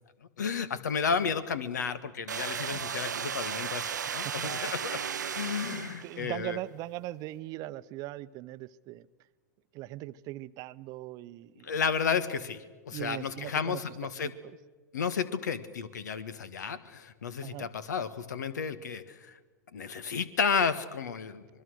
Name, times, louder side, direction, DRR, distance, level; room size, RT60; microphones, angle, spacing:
voice 1, 0.4-5.0 5.3-6.6 11.6-14.3 14.9-19.3 19.7-21.5, left 6 dB, 75° left, 14 dB, 1.6 m, -32 dB
sound 1, 2.3-6.3, right 8 dB, 85° right, 0.7 m, -35 dB
voice 2, 4.1-4.7 5.6-9.1 9.7-11.8 12.9-13.8 14.2-14.6 17.4-17.7, right 16 dB, 40° right, 15 dB, 0.7 m, -40 dB
25.5 x 21.0 x 6.5 m, 1.4 s
hypercardioid pair, 110°, 9 cm